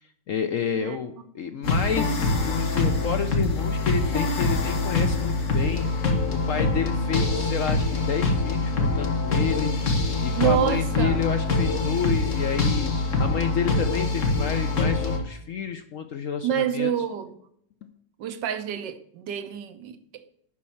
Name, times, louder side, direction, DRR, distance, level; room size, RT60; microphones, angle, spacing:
voice 1, 0.3-16.9, left 7 dB, 65° left, 0.8 m, -30 dB
sound 1, 1.6-15.2, left 3 dB, 45° left, 1.6 m, -24 dB
voice 2, 10.3-11.2 16.4-17.4 18.2-20.2, right 9 dB, 75° right, 1.5 m, -27 dB
11.0 x 4.2 x 7.1 m
omnidirectional pair, 1.9 m